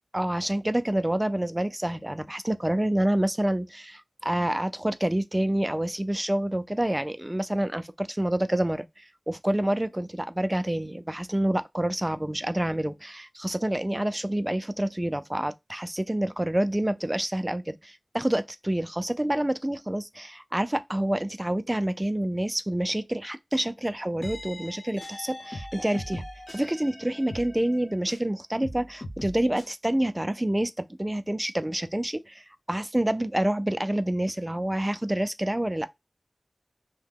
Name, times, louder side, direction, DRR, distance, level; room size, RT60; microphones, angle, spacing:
voice 1, 0.1-26.2 26.5-35.9, right 1 dB, 20° right, 0.4 m, -28 dB
sound 1, 24.2-28.3 28.6-29.7, left 1 dB, 85° left, 1.0 m, -40 dB
2.9 x 2.1 x 3.6 m
wide cardioid pair, 55°, 0 cm